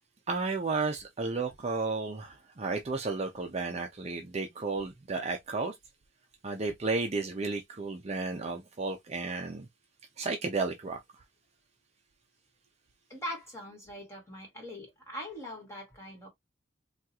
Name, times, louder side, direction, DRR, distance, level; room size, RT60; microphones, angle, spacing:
voice 1, 0.3-5.7 6.4-9.7 10.2-11.2, right 3 dB, 35° right, 0.5 m, -33 dB
voice 2, 13.1-16.3, left 1 dB, 15° left, 1.7 m, -42 dB
3.5 x 2.4 x 2.8 m
head